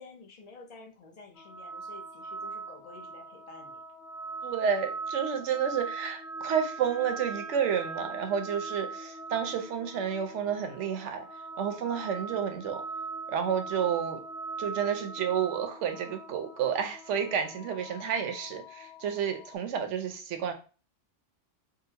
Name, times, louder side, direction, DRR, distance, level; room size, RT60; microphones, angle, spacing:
voice 1, 0.0-3.8, left 3 dB, 45° left, 3 dB, 0.6 m, -50 dB
sound 1, 1.4-19.5, right 3 dB, 60° left, 0.9 m, -41 dB
voice 2, 4.4-11.3 11.6-12.8 13.3-14.2 14.6-20.5, right 8 dB, 80° right, 6 dB, 0.9 m, -30 dB
3.8 x 2.0 x 2.7 m, 0.34 s
omnidirectional pair, 1.2 m